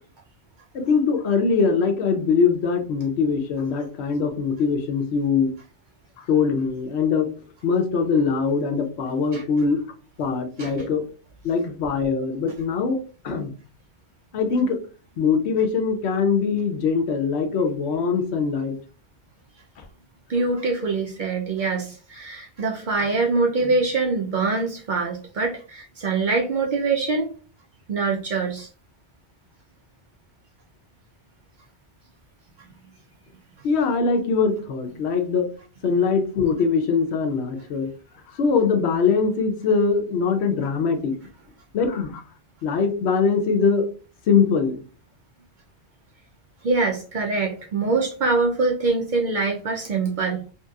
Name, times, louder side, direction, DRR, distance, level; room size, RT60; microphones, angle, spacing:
voice 1, 0.7-5.5 6.2-7.3 7.6-9.8 10.2-11.0 11.4-13.5 14.3-14.8 15.2-18.8 33.6-35.5 35.8-37.9 38.3-41.1 41.7-42.2 42.6-43.9 44.3-44.8, left 5 dB, 75° left, 6 dB, 0.9 m, -22 dB
voice 2, 20.3-27.3 27.9-28.7 46.6-50.4, right 3 dB, 55° right, 1 dB, 0.6 m, -24 dB
2.9 x 2.8 x 2.3 m, 0.38 s
omnidirectional pair, 1.1 m